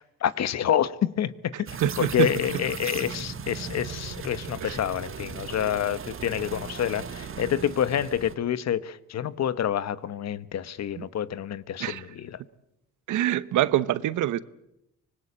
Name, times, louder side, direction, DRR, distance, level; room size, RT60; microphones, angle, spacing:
voice 1, 0.0-1.7 2.0-12.4, left 10 dB, 60° left, 1.2 m, -28 dB
sound 1, 1.7-8.3, right 6 dB, 45° right, 1.6 m, -37 dB
voice 2, 1.8-2.3 4.6-4.8 11.0-11.1 11.8-12.0 13.1-14.4, right 13 dB, 80° right, 1.0 m, -25 dB
25.0 x 20.0 x 8.7 m
cardioid pair, 90°, 30 cm